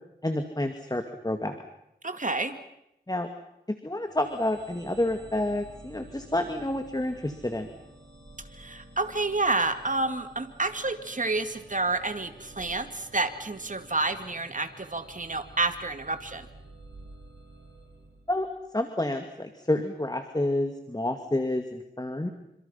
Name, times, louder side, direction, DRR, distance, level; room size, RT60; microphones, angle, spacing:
voice 1, 0.2-1.6 3.1-3.3 3.8-7.7 18.3-18.5 18.7-22.3, left 1 dB, 20° left, 6 dB, 2.4 m, -29 dB
voice 2, 2.0-2.6 8.5-16.5, right 3 dB, 45° right, 8 dB, 2.5 m, -29 dB
sound 1, 4.0-18.8, right 2 dB, 90° right, 8.0 m, -51 dB
28.5 x 26.0 x 5.9 m, 0.82 s
wide cardioid pair, 55°, 18 cm